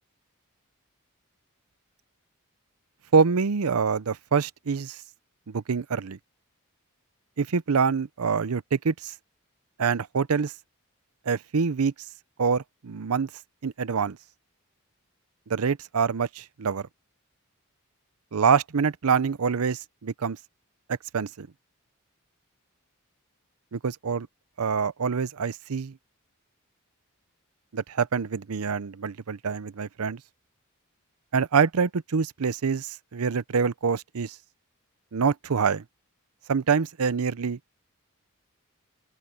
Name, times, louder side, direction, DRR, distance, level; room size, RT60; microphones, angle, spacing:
voice 1, 3.1-5.0 5.5-6.2 7.4-9.1 9.8-10.5 11.3-11.9 12.4-13.3 13.6-14.2 15.5-16.9 18.3-20.4 20.9-21.5 23.7-24.3 24.6-26.0 27.7-30.2 31.3-34.4 35.1-35.8 36.5-37.6, right 5 dB, 80° right, 0.6 m, -25 dB
open air
head